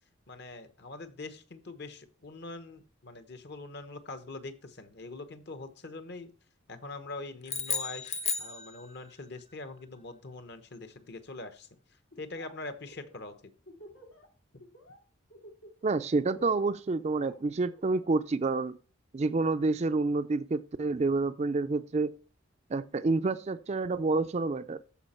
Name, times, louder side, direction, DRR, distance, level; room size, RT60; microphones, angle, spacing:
voice 1, 0.3-6.3 6.7-11.7 12.2-13.3, left 2 dB, 50° left, 1.0 m, -43 dB
sound 1, 7.5-9.2, left 5 dB, 30° left, 0.7 m, -34 dB
Laughter, 12.1-12.5 12.8-14.3 14.6-15.0 15.3-18.1, equal, 90° left, 2.8 m, -50 dB
voice 2, 15.8-18.8 19.1-22.1 22.7-24.8, right 3 dB, 30° right, 0.4 m, -28 dB
14.0 x 5.1 x 4.3 m
head